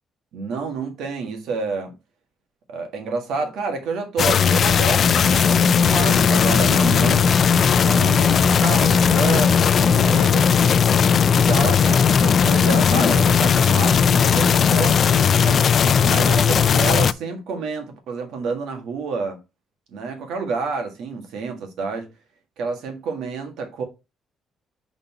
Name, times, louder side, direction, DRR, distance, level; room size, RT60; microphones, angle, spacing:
voice 1, 0.3-1.9 2.7-7.4 7.8-10.8 11.3-15.7 16.0-19.4 19.9-22.1 22.6-23.8, right 4 dB, 85° right, 1.6 m, -29 dB
sound 1, 4.2-17.1, left 7 dB, 55° left, 0.3 m, -17 dB
5.5 x 4.1 x 4.2 m
cardioid pair, 90°, 0 cm